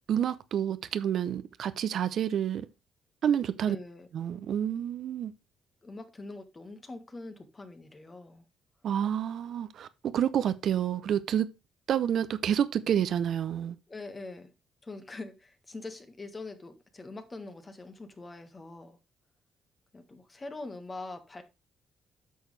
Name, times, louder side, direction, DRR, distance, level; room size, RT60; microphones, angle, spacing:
voice 1, 0.1-2.7 3.2-3.8 4.1-5.3 8.8-11.5 11.9-13.8, right 9 dB, 65° right, 0.7 m, -29 dB
voice 2, 3.7-4.1 5.8-8.4 13.9-14.5 14.8-19.0 19.9-21.4, left 3 dB, 25° left, 1.6 m, -43 dB
9.2 x 6.4 x 3.3 m
cardioid pair, 90°, 0 cm